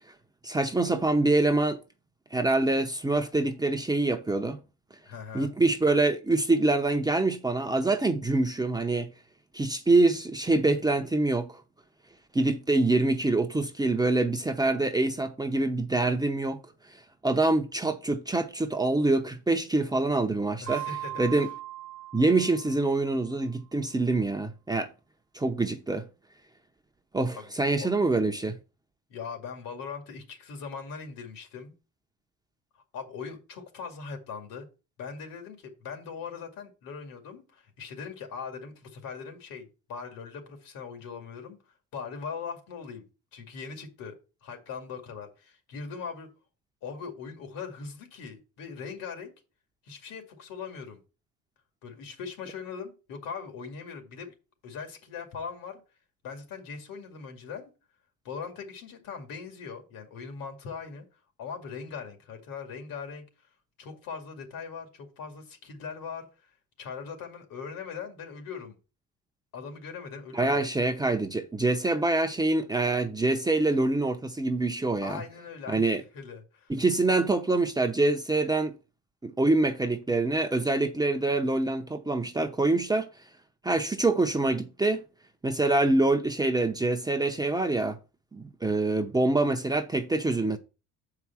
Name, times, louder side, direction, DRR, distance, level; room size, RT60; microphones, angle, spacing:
voice 1, 0.4-1.8 2.3-4.6 5.3-9.1 9.5-11.6 12.3-16.6 17.2-20.8 21.2-21.5 22.1-24.9 25.3-26.1 27.1-28.6 70.3-75.2 75.7-76.0 76.7-78.7 79.2-83.1 83.6-85.0 85.4-88.0 88.3-90.6, right 2 dB, 10° right, 0.7 m, -25 dB
voice 2, 5.1-5.5 20.6-21.5 27.4-27.5 27.8-27.9 29.1-31.7 32.9-34.7 35.0-44.1 44.4-46.3 46.8-49.3 49.8-51.0 51.8-54.3 54.6-55.8 56.2-57.7 58.2-61.1 61.4-63.2 63.8-66.5 66.8-68.8 69.5-70.7 75.0-76.7, left 5 dB, 75° left, 2.3 m, -40 dB
Mallet percussion, 20.7-23.3, right 14 dB, 55° right, 0.9 m, -39 dB
6.9 x 4.8 x 5.7 m
cardioid pair, 110°, 34 cm